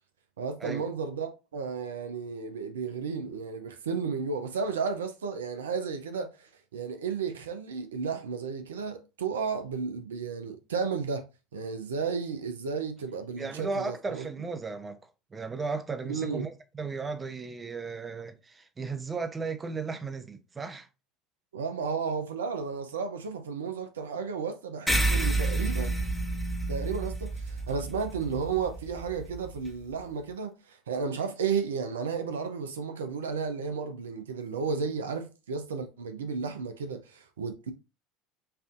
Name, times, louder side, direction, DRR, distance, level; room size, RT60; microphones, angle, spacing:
voice 1, 0.4-14.2 16.1-16.5 21.5-25.9 26.7-37.7, right 5 dB, 80° right, 0.4 m, -33 dB
voice 2, 13.4-15.0 15.3-20.9, right 4 dB, 25° right, 0.6 m, -35 dB
sound 1, 24.9-29.7, right 2 dB, ahead, 0.9 m, -30 dB
5.4 x 2.6 x 2.4 m
hypercardioid pair, 70°, 0 cm